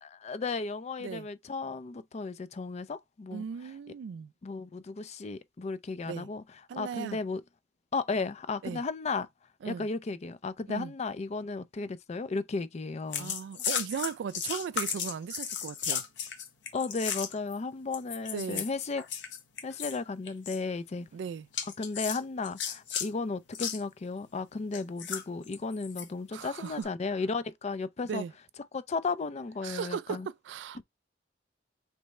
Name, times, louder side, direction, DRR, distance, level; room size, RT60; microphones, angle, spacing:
voice 1, 0.0-3.4 4.4-6.4 6.8-7.4 7.9-9.3 9.6-13.4 16.7-19.0 19.6-21.1 21.8-28.2 28.7-30.3, left 4 dB, 40° left, 0.4 m, -34 dB
voice 2, 3.3-4.3 6.1-6.3 6.7-7.2 8.6-8.8 9.6-9.9 10.7-10.9 13.2-16.0 18.3-18.6 21.1-21.5 26.3-26.9 28.0-28.3 29.6-30.8, right 7 dB, 75° right, 0.3 m, -37 dB
sound 1, 13.1-17.5 17.9-20.0 20.2-20.6 21.5-23.1 23.5-23.8 24.7-26.1 26.6-26.8, left 8 dB, 75° left, 1.0 m, -35 dB
3.3 x 3.1 x 4.1 m
head